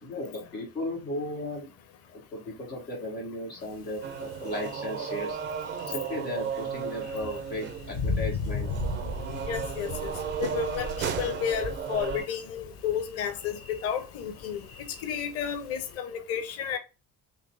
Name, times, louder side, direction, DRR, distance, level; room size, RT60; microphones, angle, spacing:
voice 1, 0.0-1.7 2.1-5.4 5.9-8.7, left 1 dB, 90° left, 1.3 m, -35 dB
Thunder, 3.6-16.0, left 4 dB, 55° left, 0.8 m, -38 dB
sound 1, 4.0-12.3, right 7 dB, 25° right, 0.4 m, -34 dB
voice 2, 9.5-10.1 10.4-16.8, left 8 dB, 30° left, 0.6 m, -32 dB
3.9 x 2.8 x 2.6 m
figure-of-eight pair, 45°, 48 cm